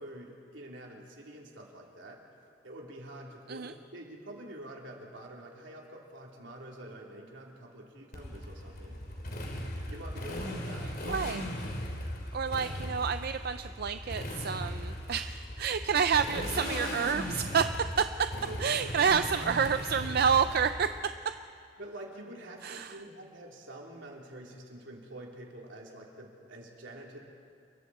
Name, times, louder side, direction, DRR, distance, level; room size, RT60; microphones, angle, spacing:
voice 1, 0.0-2.2 2.6-9.4 9.9-11.0 18.5-19.1 21.8-27.2, right 1 dB, 80° right, -1 dB, 3.4 m, -47 dB
Motorcycle, 8.1-21.0, left 1 dB, 55° left, 3.1 m, -38 dB
voice 2, 11.1-11.5 12.3-17.7 18.0-18.1 18.6-20.9 22.6-23.0, right 6 dB, 55° right, 10 dB, 0.5 m, -29 dB
29.0 x 22.5 x 4.3 m, 2.4 s
head